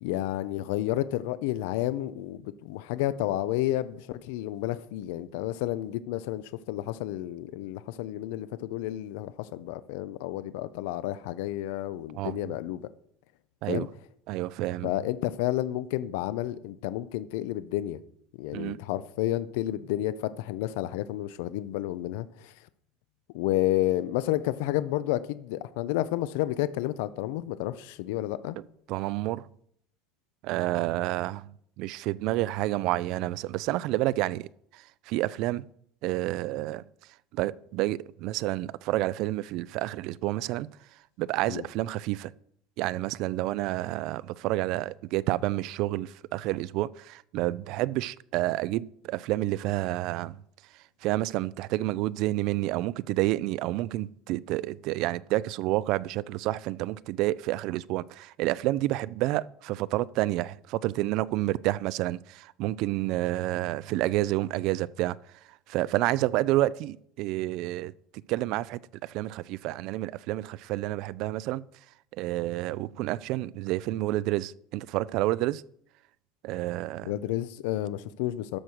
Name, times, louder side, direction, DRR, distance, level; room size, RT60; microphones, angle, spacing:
voice 1, 0.0-12.8 13.7-13.9 14.8-18.0 18.4-22.5 23.3-28.5 41.5-41.6 77.0-78.6, left 14 dB, 80° left, 0.5 m, -31 dB
voice 2, 12.1-12.5 13.6-13.9 14.3-14.9 18.5-18.8 28.9-29.5 30.4-35.7 36.0-36.8 37.3-40.7 41.2-42.3 42.8-50.4 51.0-65.2 65.7-67.9 68.3-71.6 72.1-75.6 76.4-77.1, right 16 dB, 55° right, 0.3 m, -29 dB
12.5 x 4.6 x 6.4 m
cardioid pair, 150°, 0 cm